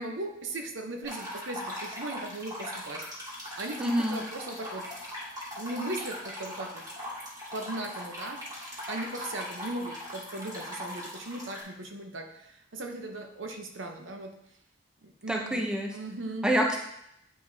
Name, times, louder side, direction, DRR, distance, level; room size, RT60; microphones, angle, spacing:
voice 1, 0.0-3.0 3.4-4.9 5.6-6.8 7.5-8.4 8.9-14.3 15.0-15.6 15.9-16.5, right 2 dB, 75° right, 4 dB, 0.8 m, -38 dB
sound 1, 1.0-11.6, left 1 dB, 20° right, 1.9 m, -40 dB
voice 2, 3.8-4.2 15.3-15.9 16.4-16.8, equal, 5° right, 0 dB, 0.6 m, -26 dB
8.9 x 5.0 x 2.7 m, 0.78 s
head